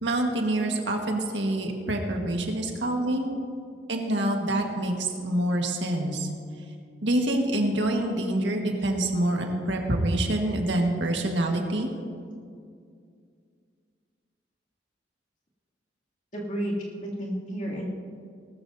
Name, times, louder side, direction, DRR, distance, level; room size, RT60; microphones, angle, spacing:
voice 1, 0.0-3.3 3.9-6.3 7.0-11.9, right 1 dB, 80° right, 2 dB, 1.7 m, -26 dB
voice 2, 16.3-17.9, equal, 45° left, -4 dB, 2.8 m, -31 dB
19.0 x 13.5 x 2.8 m, 2.3 s
head